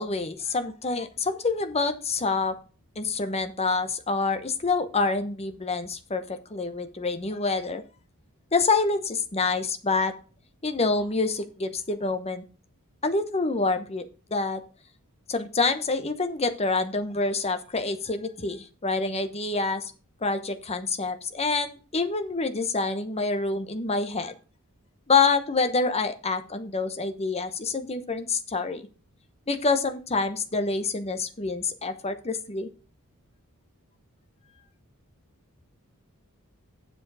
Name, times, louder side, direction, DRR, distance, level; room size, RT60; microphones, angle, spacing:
voice 1, 0.0-2.6 3.0-7.8 8.5-10.1 10.6-12.4 13.0-14.0 14.3-14.6 15.3-19.9 20.2-24.3 25.1-28.8 29.5-32.7, left 3 dB, 30° left, 9 dB, 1.0 m, -27 dB
7.5 x 7.1 x 4.9 m, 0.36 s
head